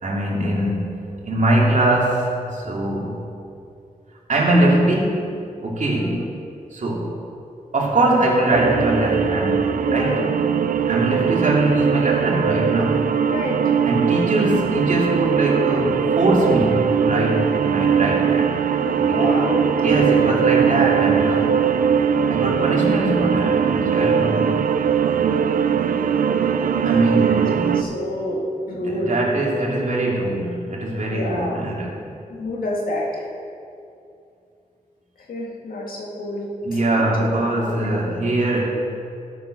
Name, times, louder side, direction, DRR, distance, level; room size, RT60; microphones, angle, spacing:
voice 1, 0.0-3.2 4.3-6.2 6.7-7.1 7.7-10.2 10.8-13.1 13.8-18.6 19.1-19.2 19.8-21.6 22.3-24.5 26.8-27.9 28.8-32.0 36.6-38.6, right 1 dB, 60° right, -3 dB, 2.4 m, -22 dB
voice 2, 5.9-6.3 9.9-10.3 13.3-13.6 18.9-19.7 20.0-20.4 20.7-20.8 25.7-29.1 31.1-31.6 32.3-33.3 35.3-37.3 37.6-37.9, left 1 dB, 85° left, -2 dB, 2.1 m, -29 dB
sound 1, 8.5-27.8, right 7 dB, 80° right, 0.5 m, -20 dB
12.5 x 6.4 x 6.2 m, 2.5 s
cardioid pair, 75°, 14 cm